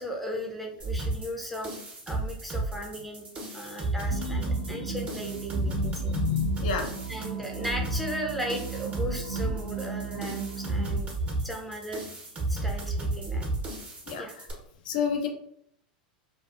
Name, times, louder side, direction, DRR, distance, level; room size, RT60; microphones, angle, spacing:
voice 1, 0.0-1.7 2.1-6.1 7.1-11.1 11.4-12.1 12.5-13.5 14.2-14.3, equal, ahead, 0 dB, 0.6 m, -36 dB
sound 1, 0.8-14.5, right 2 dB, 25° right, 0.9 m, -32 dB
voice 2, 4.1-5.0 5.5-6.9 14.1-14.3 14.9-15.3, left 7 dB, 70° left, 4 dB, 0.4 m, -31 dB
sound 2, 4.1-11.0, right 6 dB, 75° right, 0.5 m, -36 dB
2.4 x 2.3 x 2.4 m, 0.69 s
hypercardioid pair, 95°, 5 cm